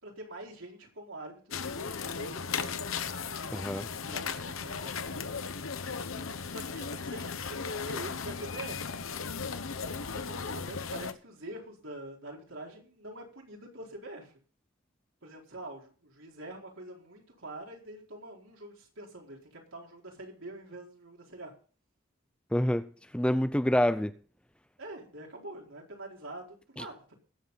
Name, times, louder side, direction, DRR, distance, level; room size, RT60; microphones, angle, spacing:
voice 1, 0.0-2.8 4.0-5.0 6.4-9.0 10.1-14.4 15.2-21.5 24.8-27.2, right 1 dB, 80° right, 4.4 m, -45 dB
sound 1, 1.5-11.1, left 5 dB, 85° left, 1.0 m, -36 dB
voice 2, 3.5-3.9 22.5-24.1, left 1 dB, 5° left, 0.5 m, -27 dB
21.0 x 7.8 x 4.1 m
head